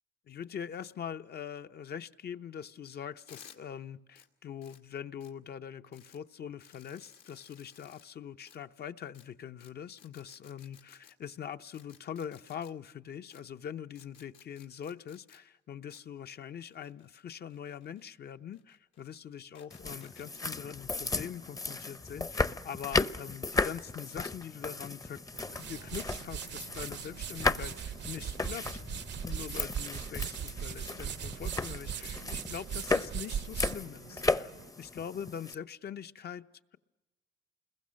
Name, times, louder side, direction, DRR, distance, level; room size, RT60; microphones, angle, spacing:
voice 1, 0.3-25.2 25.5-34.5 34.8-36.4, left 8 dB, 55° left, 10 dB, 0.8 m, -43 dB
sound 1, 3.3-3.6 4.1-4.3 4.6-4.8 5.2-5.3 5.9-6.2 6.6-8.0 8.5-8.6 9.1-9.2 9.6-9.7 10.0-11.1 11.7-12.7 13.3-13.4 13.9-15.4 15.9-16.0 16.7-18.0 18.5-19.2 19.5-20.3, left 8 dB, 75° left, 2.4 m, -57 dB
sound 2, 19.7-35.5, left 3 dB, 15° left, 0.7 m, -35 dB
sound 3, 25.3-34.7, right 9 dB, 60° right, 0.7 m, -40 dB
29.0 x 21.5 x 6.4 m, 1.1 s
cardioid pair, 90°, 20 cm